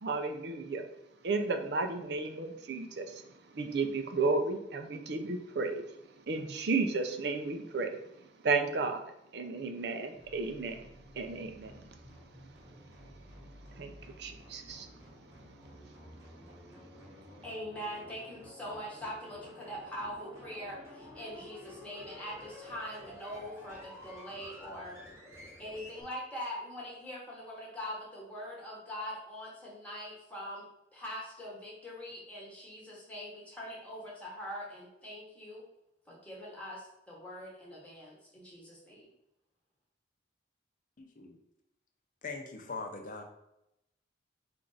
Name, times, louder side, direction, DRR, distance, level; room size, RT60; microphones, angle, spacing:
voice 1, 0.0-0.9 1.2-5.8 6.3-10.9 11.1-11.9 12.4-12.5 13.8-15.0, right 3 dB, 60° right, 6 dB, 0.5 m, -33 dB
sound 1, 10.1-26.0, left 1 dB, 15° right, 1.0 m, -52 dB
voice 2, 17.4-25.0 25.6-35.6 36.1-39.1, equal, 5° left, -4 dB, 1.0 m, -43 dB
voice 3, 41.0-41.4 42.2-43.2, left 4 dB, 45° left, 4 dB, 0.6 m, -41 dB
4.4 x 2.6 x 3.9 m, 0.84 s
head